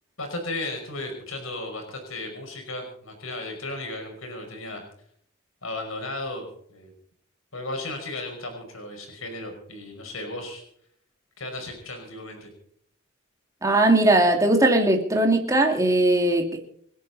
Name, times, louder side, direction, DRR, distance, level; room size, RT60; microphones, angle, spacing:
voice 1, 0.2-4.8 5.6-6.4 6.7-6.9 7.5-10.6 11.4-12.5, left 2 dB, 75° left, 5.6 m, -35 dB
voice 2, 13.6-16.6, right 1 dB, 15° right, 2.6 m, -19 dB
27.5 x 10.0 x 4.2 m
head